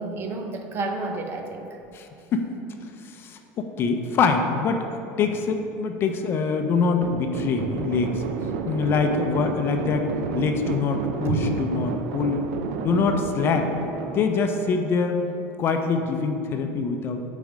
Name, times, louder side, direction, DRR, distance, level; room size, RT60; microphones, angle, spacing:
voice 1, 0.0-1.8 11.3-11.5, right 3 dB, 40° right, 4 dB, 0.6 m, -30 dB
voice 2, 1.9-2.4 3.0-8.2 8.6-10.1 10.3-12.5 12.8-13.7 14.1-15.2 15.6-17.2, left 5 dB, 35° left, 5 dB, 0.5 m, -24 dB
sound 1, 7.0-15.3, right 5 dB, 80° right, 0.5 m, -31 dB
7.0 x 4.2 x 5.0 m, 2.7 s
cardioid pair, 140°, 6 cm